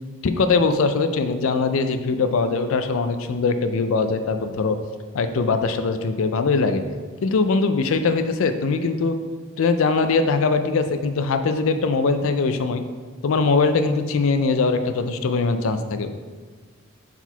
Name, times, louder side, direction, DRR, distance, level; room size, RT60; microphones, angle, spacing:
voice 1, 0.2-4.8 5.1-6.8 7.2-9.2 9.6-12.8 13.2-16.1, left 4 dB, 65° left, 8 dB, 0.4 m, -21 dB
4.5 x 4.0 x 5.5 m, 1.4 s
head